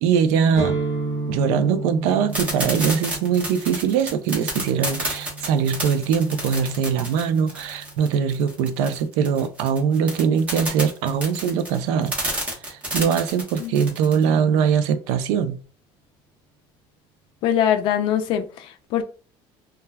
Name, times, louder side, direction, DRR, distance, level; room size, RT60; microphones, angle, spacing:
voice 1, 0.0-0.8 1.3-12.1 12.7-15.6, right 7 dB, 85° right, 0.4 m, -22 dB
sound 1, 0.5-8.3, right 2 dB, 25° left, 0.8 m, -33 dB
sound 2, 2.3-14.2, right 1 dB, 15° right, 0.8 m, -30 dB
voice 2, 17.4-19.0, left 9 dB, 50° left, 0.4 m, -22 dB
2.3 x 2.2 x 3.2 m
cardioid pair, 175°, 11 cm